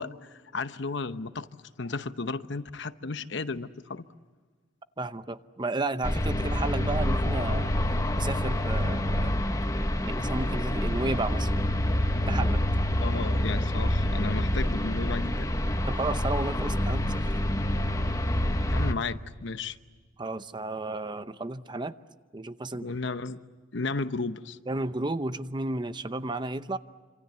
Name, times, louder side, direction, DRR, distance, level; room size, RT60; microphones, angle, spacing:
voice 1, 0.0-1.5 1.8-4.1 13.0-15.5 18.7-19.8 22.7-23.4 23.7-24.6, left 3 dB, 65° left, 11 dB, 0.9 m, -34 dB
voice 2, 5.0-7.7 8.2-9.3 10.0-11.5 12.3-12.6 15.8-17.2 20.2-21.9 22.3-22.9 24.7-26.8, right 2 dB, 25° right, 12 dB, 0.8 m, -32 dB
sound 1, 6.0-18.9, left 1 dB, 15° left, 1.2 m, -27 dB
27.0 x 26.5 x 8.1 m, 1.4 s
head